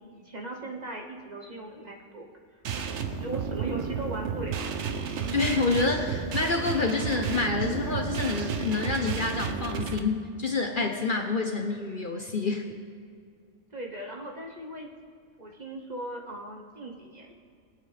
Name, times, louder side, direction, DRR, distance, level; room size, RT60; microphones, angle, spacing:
voice 1, 0.1-2.2 3.2-4.7 13.7-14.9 15.4-17.3, right 2 dB, 35° right, 0 dB, 1.2 m, -38 dB
sound 1, 2.6-10.0, right 6 dB, 65° right, 1.0 m, -32 dB
voice 2, 5.3-12.7, left 3 dB, 45° left, 4 dB, 0.9 m, -28 dB
21.5 x 8.1 x 3.4 m, 2.2 s
omnidirectional pair, 1.3 m